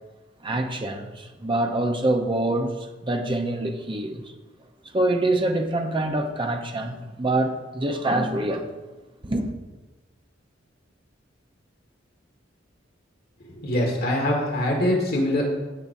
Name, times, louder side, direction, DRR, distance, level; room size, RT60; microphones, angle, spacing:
voice 1, 0.4-4.3 4.9-8.7 9.2-9.4, right 1 dB, 25° right, 0.8 m, -25 dB
voice 2, 13.6-15.4, left 1 dB, 55° left, 1.8 m, -23 dB
16.0 x 6.9 x 2.7 m
head